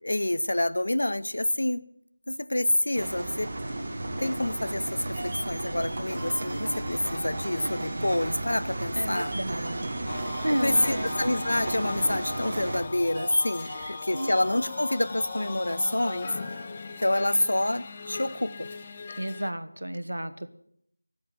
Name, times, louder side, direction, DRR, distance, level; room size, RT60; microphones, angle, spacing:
voice 1, 0.0-1.8 2.3-3.5 4.2-9.3 10.6-16.3 17.0-18.7, left 1 dB, 65° left, 14 dB, 0.9 m, -27 dB
sound 1, 2.9-12.8, right 2 dB, 35° right, 2.0 m, -34 dB
sound 2, 4.6-16.6, right 1 dB, 20° right, 2.0 m, -43 dB
voice 2, 8.9-10.1 10.4-11.2 13.6-14.3 19.2-20.5, right 1 dB, 75° right, 11 dB, 1.4 m, -32 dB
sound 3, 10.1-19.5, left 4 dB, 25° left, 0.6 m, -39 dB
15.0 x 7.7 x 9.2 m, 0.70 s
figure-of-eight pair, 170°, 0 cm